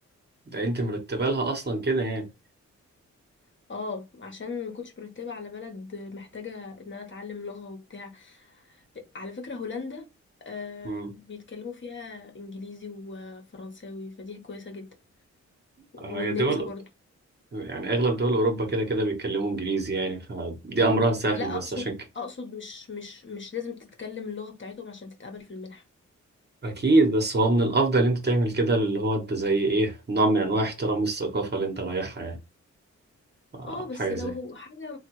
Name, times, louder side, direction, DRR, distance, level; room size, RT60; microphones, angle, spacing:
voice 1, 0.5-2.3 10.8-11.1 16.0-16.7 17.5-21.8 26.6-32.4 33.5-34.3, right 2 dB, 35° right, 1.2 m, -25 dB
voice 2, 3.7-10.1 10.4-14.9 15.9-16.8 21.3-25.8 33.7-35.0, left 4 dB, 40° left, 1.1 m, -38 dB
3.3 x 2.4 x 3.0 m
cardioid pair, 70°, 30 cm